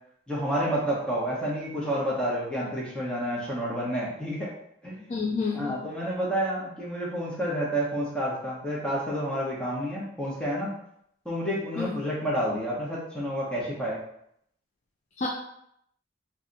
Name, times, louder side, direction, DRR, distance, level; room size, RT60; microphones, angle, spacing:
voice 1, 0.3-4.5 4.8-5.0 5.5-10.7 11.2-14.0, equal, 5° left, -6 dB, 0.8 m, -29 dB
voice 2, 5.1-5.8 11.8-12.0 15.2-15.3, left 4 dB, 40° left, -3 dB, 0.3 m, -29 dB
2.7 x 2.3 x 3.8 m, 0.73 s
head